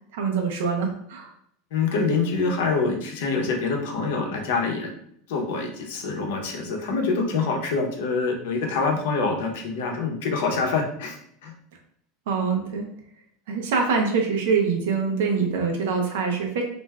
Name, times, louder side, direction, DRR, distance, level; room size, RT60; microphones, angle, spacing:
voice 1, 0.1-1.3 12.3-12.9 13.5-16.6, right 5 dB, 80° right, 2 dB, 0.7 m, -24 dB
voice 2, 1.7-4.9 5.3-11.2 11.4-11.5, left 4 dB, 75° left, 2 dB, 0.7 m, -25 dB
3.3 x 2.5 x 2.2 m, 0.68 s
supercardioid pair, 165°, 0 cm